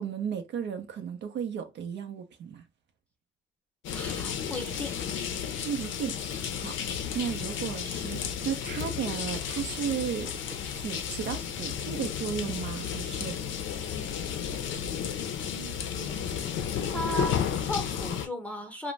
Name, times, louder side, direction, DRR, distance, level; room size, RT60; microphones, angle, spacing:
voice 1, 0.0-2.6 5.6-6.7 7.1-10.3 10.6-13.4, right 8 dB, 65° right, 0.5 m, -34 dB
sound 1, 3.8-18.3, left 8 dB, 75° left, 0.5 m, -33 dB
voice 2, 3.9-4.9 15.5-16.2 16.9-18.9, equal, 5° left, 0.7 m, -36 dB
2.5 x 2.1 x 3.1 m
cardioid pair, 90°, 20 cm